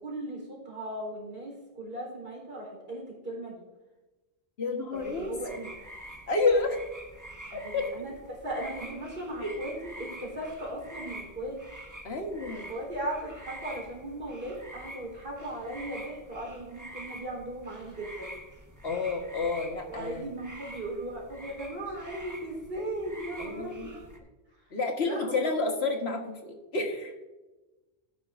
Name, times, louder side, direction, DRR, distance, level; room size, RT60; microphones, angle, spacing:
voice 1, 0.0-3.5 4.9-5.7 7.5-11.6 12.7-18.3 19.9-24.0 25.0-25.5, right 1 dB, 60° right, -2 dB, 4.1 m, -37 dB
voice 2, 4.6-5.3 6.3-6.8 7.5-7.9 9.4-9.6 12.0-12.7 18.8-20.3 23.4-23.9 24.7-27.1, left 3 dB, 70° left, 3 dB, 1.7 m, -30 dB
sound 1, 4.9-24.2, right 1 dB, 15° right, 1.2 m, -46 dB
13.5 x 9.9 x 2.6 m, 1.1 s
omnidirectional pair, 1.1 m